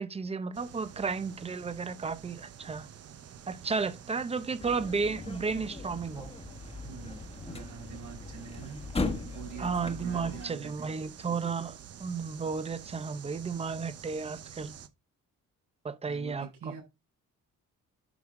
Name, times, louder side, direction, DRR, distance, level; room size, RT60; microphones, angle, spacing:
voice 1, 0.0-2.9 3.5-6.3 9.6-14.8 15.8-16.7, right 5 dB, 20° right, 0.8 m, -33 dB
sound 1, 0.5-14.9, right 9 dB, 50° right, 1.0 m, -49 dB
sound 2, 4.6-10.5, left 3 dB, 20° left, 1.3 m, -38 dB
voice 2, 6.8-8.8 9.2-10.9 16.0-16.8, right 7 dB, 75° right, 5.7 m, -46 dB
11.0 x 5.6 x 3.7 m
cardioid pair, 160°, 31 cm